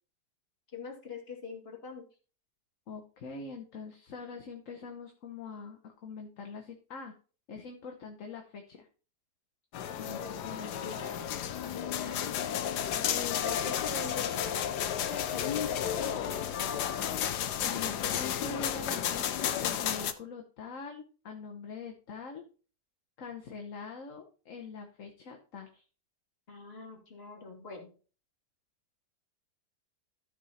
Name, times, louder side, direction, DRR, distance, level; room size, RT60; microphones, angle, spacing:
voice 1, 0.7-2.0 10.0-11.3 11.7-12.3 13.1-16.9 26.5-27.9, left 4 dB, 35° left, 0 dB, 2.5 m, -43 dB
voice 2, 2.9-7.1 7.5-8.9 9.9-11.1 17.6-22.5 23.2-25.8, left 4 dB, 55° left, 3 dB, 1.4 m, -44 dB
sound 1, 9.7-20.1, left 10 dB, 75° left, 1.3 m, -32 dB
13.5 x 5.0 x 4.1 m, 0.38 s
omnidirectional pair, 1.8 m